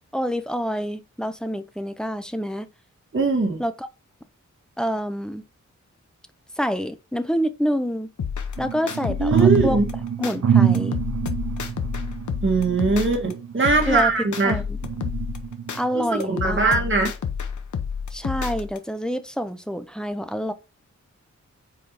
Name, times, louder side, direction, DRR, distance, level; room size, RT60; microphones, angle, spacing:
voice 1, 0.1-2.7 3.6-3.9 4.8-5.4 6.6-8.1 8.6-9.8 10.2-11.0 13.9-14.1 14.4-14.8 15.7-16.8 18.1-20.5, equal, ahead, 0.7 m, -27 dB
voice 2, 3.1-3.6 9.2-9.9 12.4-14.6 15.9-17.1, right 3 dB, 40° right, 1.7 m, -21 dB
sound 1, 8.2-10.3 10.7-13.3 13.6-15.8 16.2-18.8, left 6 dB, 80° left, 0.9 m, -30 dB
sound 2, 8.6-14.3 14.8-15.9 16.4-16.6, right 7 dB, 60° right, 0.8 m, -25 dB
4.7 x 4.5 x 5.3 m
wide cardioid pair, 85°, 30 cm